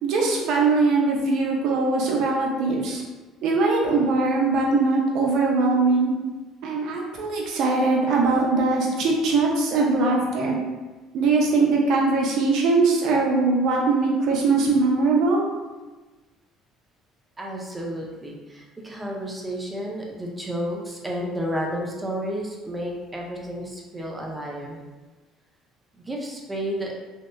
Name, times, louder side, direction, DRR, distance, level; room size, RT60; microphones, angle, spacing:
voice 1, 0.0-3.0 3.4-6.1 6.6-10.6 11.1-15.4, right 3 dB, 65° right, -1 dB, 0.5 m, -21 dB
voice 2, 17.4-24.8 26.0-26.9, equal, 20° right, -1 dB, 0.5 m, -31 dB
2.8 x 2.1 x 2.2 m, 1.2 s
supercardioid pair, 75°, 0 cm